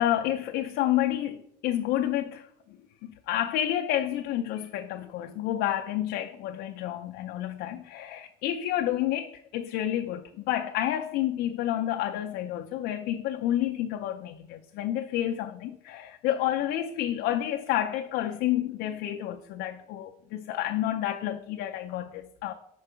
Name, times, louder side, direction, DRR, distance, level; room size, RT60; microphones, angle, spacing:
voice 1, 0.0-2.5 3.0-22.5, left 12 dB, 85° left, 0.4 m, -29 dB
5.7 x 4.5 x 4.9 m
cardioid pair, 110°, 17 cm